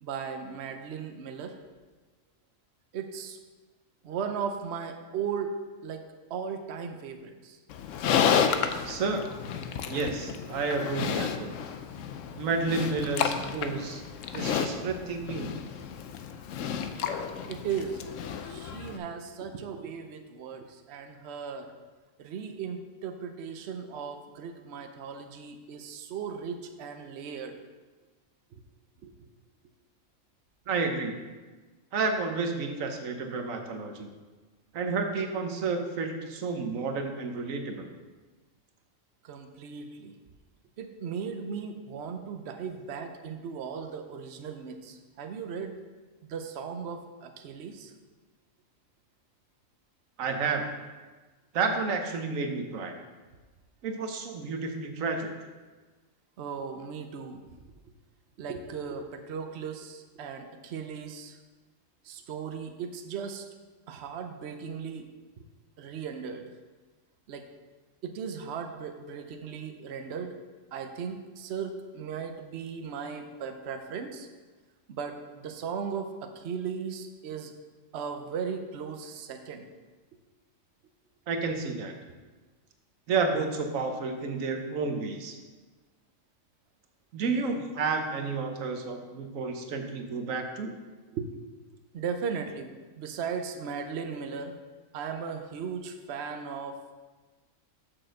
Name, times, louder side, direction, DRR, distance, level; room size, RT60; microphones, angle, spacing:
voice 1, 0.0-1.6 2.9-3.4 4.0-5.5 5.8-7.6 17.5-18.0 18.4-21.7 22.2-27.6 28.5-28.6 29.0-29.1 39.2-40.1 40.8-45.8 46.2-47.9 56.4-57.4 58.4-61.4 62.0-63.5 63.9-65.1 65.8-66.5 67.3-67.4 68.0-70.4 70.7-74.3 74.9-77.5 77.9-79.7 90.6-90.8 91.1-91.3 91.9-94.6 94.9-96.9, right 6 dB, 60° right, 5 dB, 0.9 m, -37 dB
Livestock farm animals working animals, 7.7-19.0, left 7 dB, 75° left, 1.0 m, -31 dB
voice 2, 8.8-9.3 9.9-11.5 12.4-14.0 14.3-15.5 30.7-31.1 31.9-34.1 34.7-37.9 50.2-50.6 51.5-52.9 53.8-55.3 81.3-81.9 83.1-85.4 87.1-90.8, right 4 dB, 85° right, 4 dB, 1.3 m, -31 dB
6.7 x 6.0 x 6.3 m, 1.3 s
omnidirectional pair, 1.3 m